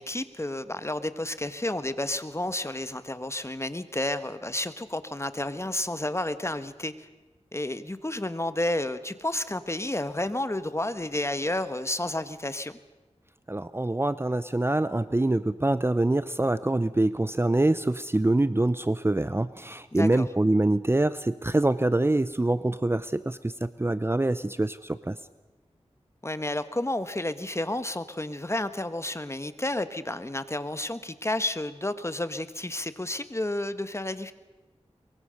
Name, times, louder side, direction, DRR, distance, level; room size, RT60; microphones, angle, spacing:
voice 1, 0.0-7.1 7.5-12.7 19.9-20.3 26.2-34.3, left 1 dB, 25° left, 11 dB, 1.4 m, -31 dB
voice 2, 13.5-25.1, right 2 dB, 20° right, 14 dB, 0.7 m, -25 dB
23.5 x 22.5 x 6.6 m, 1.1 s
wide cardioid pair, 60°, 11 cm